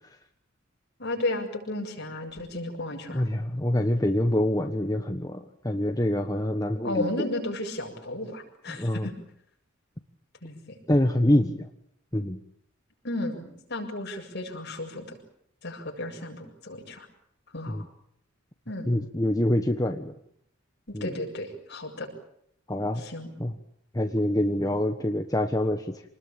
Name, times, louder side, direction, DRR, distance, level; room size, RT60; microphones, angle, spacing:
voice 1, 1.0-3.3 6.8-9.1 10.4-10.8 13.0-15.2 15.6-17.1 17.5-17.8 18.7-18.9 20.9-22.1 23.0-23.3, left 1 dB, 55° left, 2 dB, 7.4 m, -34 dB
voice 2, 3.1-7.3 8.7-9.1 10.9-11.7 12.1-12.4 17.7-17.8 18.9-20.1 20.9-21.1 22.7-23.0 23.4-23.5 23.9-26.0, left 1 dB, 20° left, 5 dB, 1.3 m, -25 dB
27.5 x 20.5 x 8.9 m, 0.73 s
head